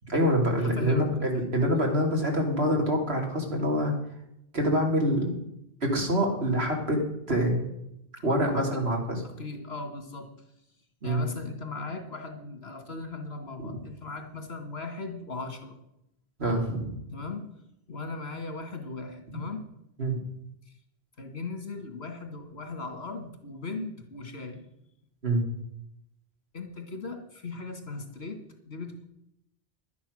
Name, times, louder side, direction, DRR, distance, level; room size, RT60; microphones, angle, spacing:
voice 1, 0.1-3.9 4.5-5.4 5.8-7.7 8.2-9.2 11.0-11.3 13.6-13.8 16.4-16.9 20.0-20.2 25.2-25.4, equal, 85° right, 1 dB, 3.0 m, -26 dB
voice 2, 0.6-1.1 1.3-1.6 8.2-8.8 9.2-10.3 11.0-15.7 17.1-17.5 17.9-19.6 21.2-24.6 26.5-29.0, left 3 dB, 90° left, 5 dB, 2.3 m, -38 dB
11.5 x 9.7 x 6.4 m, 0.80 s
omnidirectional pair, 1.0 m